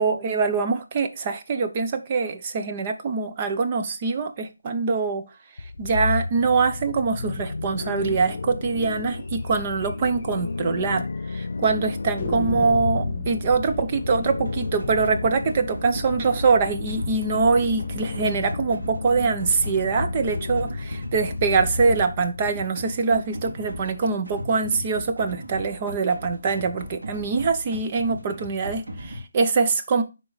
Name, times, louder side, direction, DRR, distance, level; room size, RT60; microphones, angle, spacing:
voice 1, 0.0-5.2 5.8-30.0, right 4 dB, 30° right, 0.9 m, -24 dB
sound 1, 5.6-22.4, left 3 dB, 75° left, 0.4 m, -32 dB
sound 2, 9.4-9.5 9.8-9.9 10.2-10.3 10.9-11.5 12.2-17.0, left 3 dB, 20° left, 2.3 m, -36 dB
sound 3, 14.4-29.2, equal, 85° right, 2.3 m, -38 dB
10.5 x 3.8 x 4.1 m
figure-of-eight pair, 165°, 0 cm